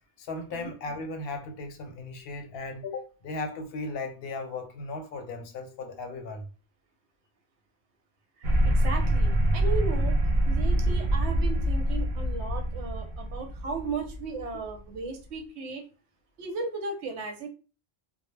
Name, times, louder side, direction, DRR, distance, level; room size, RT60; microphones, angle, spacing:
voice 1, 0.2-6.5, left 3 dB, 65° left, 0.7 m, -36 dB
sound 1, 8.4-14.9, right 1 dB, 55° right, 0.6 m, -25 dB
voice 2, 8.4-10.2 10.5-15.8 16.4-17.5, right 4 dB, 80° right, 0.9 m, -36 dB
2.1 x 2.0 x 3.1 m
omnidirectional pair, 1.1 m